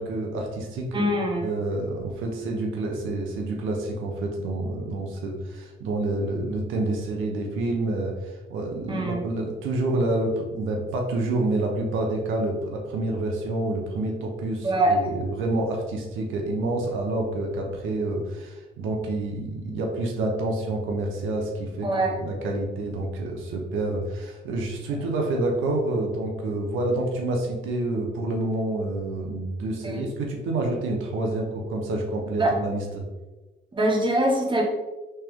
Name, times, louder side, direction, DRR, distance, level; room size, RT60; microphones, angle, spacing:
voice 1, 0.0-1.1 1.4-33.0, right 2 dB, 90° right, 1 dB, 0.8 m, -28 dB
voice 2, 0.9-1.5 8.9-9.2 14.6-15.1 21.8-22.1 29.8-30.1 32.4-32.5 33.7-34.6, right 1 dB, 25° right, -2 dB, 1.1 m, -23 dB
3.3 x 3.3 x 3.5 m, 1.1 s
cardioid pair, 90°, 20 cm